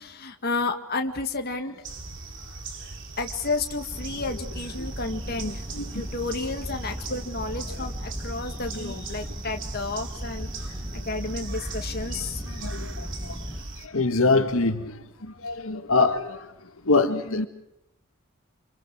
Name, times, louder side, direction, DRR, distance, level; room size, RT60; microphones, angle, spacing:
voice 1, 0.0-1.8 3.2-5.6 5.9-10.5 11.1-12.4, left 3 dB, 45° left, 2.0 m, -31 dB
sound 1, 1.8-13.9, right 3 dB, 55° right, 3.4 m, -39 dB
sound 2, 3.9-13.6, equal, 5° left, 2.1 m, -37 dB
voice 2, 5.4-6.0 8.8-8.9 10.6-11.1 12.4-13.5 13.8-16.5 16.8-17.5, left 3 dB, 65° left, 1.9 m, -26 dB
29.5 x 27.0 x 4.8 m
head